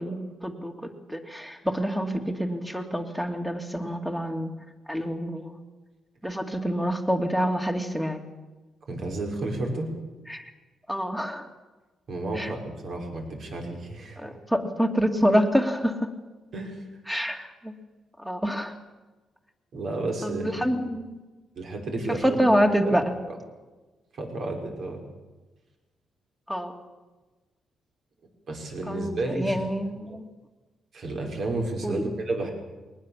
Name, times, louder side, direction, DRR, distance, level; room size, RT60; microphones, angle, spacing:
voice 1, 0.0-4.5 4.9-5.6 6.2-8.2 10.3-10.5 10.9-11.5 12.4-12.5 14.2-16.1 17.1-17.7 18.2-18.8 20.2-21.2 22.2-23.1 26.5-26.7 28.9-30.3 31.8-32.1, equal, 5° right, 4 dB, 2.4 m, -27 dB
voice 2, 8.9-9.9 12.1-14.2 16.5-16.9 19.7-20.6 21.6-22.5 22.8-23.0 24.1-25.0 28.5-29.6 30.9-32.5, right 2 dB, 55° right, 2 dB, 5.7 m, -31 dB
22.0 x 19.0 x 7.4 m, 1.2 s
cardioid pair, 140°, 0 cm